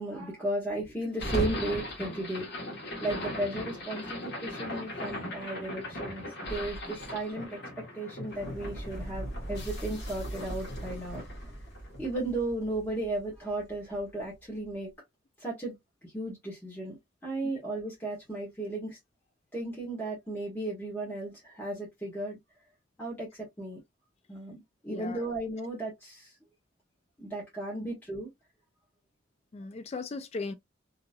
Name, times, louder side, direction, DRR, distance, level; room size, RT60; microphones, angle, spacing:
voice 1, 0.0-2.5 3.0-11.2 12.0-14.9 15.4-15.8 16.1-17.0 17.2-19.0 19.5-22.4 23.0-23.3 23.6-23.8 24.3-24.5 24.8-26.3 27.2-28.3, right 2 dB, 10° left, 1.2 m, -35 dB
sound 1, 1.1-13.4, equal, 60° left, 1.2 m, -37 dB
voice 2, 24.9-25.3 29.5-30.5, left 3 dB, 35° left, 0.3 m, -37 dB
2.8 x 2.7 x 2.3 m
head